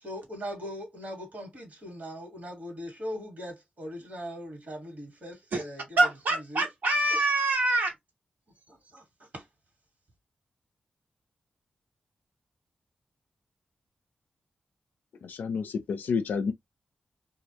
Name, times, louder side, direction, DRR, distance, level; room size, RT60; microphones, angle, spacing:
voice 1, 0.0-6.1 6.4-6.7 7.1-7.2 8.7-9.5, equal, 65° right, 1.3 m, -40 dB
voice 2, 6.0-7.9, right 2 dB, 80° right, 1.1 m, -25 dB
voice 3, 15.2-16.5, left 5 dB, 85° left, 0.4 m, -30 dB
2.3 x 2.0 x 2.7 m
cardioid pair, 50°, 3 cm